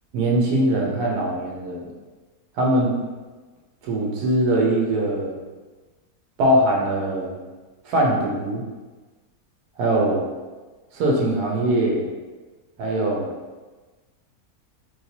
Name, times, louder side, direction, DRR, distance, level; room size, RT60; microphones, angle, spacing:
voice 1, 0.1-1.9 2.6-2.9 3.8-5.4 6.4-7.4 7.8-8.6 9.8-10.3 10.9-12.0 12.8-13.3, right 1 dB, 85° right, -2 dB, 1.3 m, -21 dB
3.1 x 2.8 x 2.8 m, 1.3 s
omnidirectional pair, 1.6 m